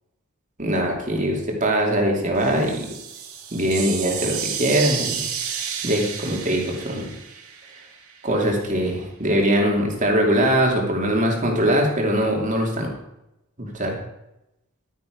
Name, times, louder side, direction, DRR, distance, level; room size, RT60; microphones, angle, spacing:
voice 1, 0.6-2.9 3.5-5.2 5.8-7.1 8.2-12.9 13.6-14.0, right 1 dB, 35° right, 0 dB, 2.6 m, -22 dB
sound 1, 2.4-8.3, right 7 dB, 80° right, 2.1 m, -31 dB
12.0 x 9.4 x 5.2 m, 0.89 s
head